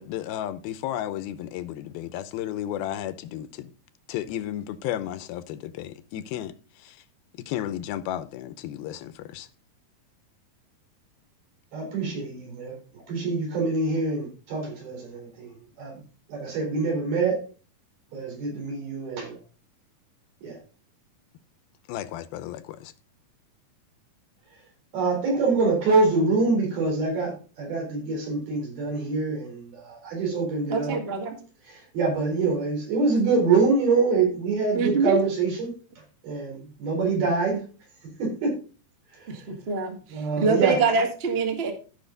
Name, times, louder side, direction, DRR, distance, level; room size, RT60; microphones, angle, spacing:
voice 1, 0.0-3.7 4.1-6.5 6.8-7.0 7.5-9.5 21.9-22.9, left 12 dB, 85° left, 2.6 m, -33 dB
voice 2, 11.7-12.7 13.1-15.5 15.8-15.9 16.3-17.4 18.1-19.3 20.4-20.6 24.9-31.0 31.7-35.7 36.2-37.6 38.2-38.5 40.1-40.8, right 4 dB, 85° right, 6.1 m, -25 dB
voice 3, 30.7-31.3 34.7-35.2 39.3-41.7, right 4 dB, 40° right, 0.8 m, -25 dB
14.0 x 5.8 x 3.9 m
omnidirectional pair, 4.2 m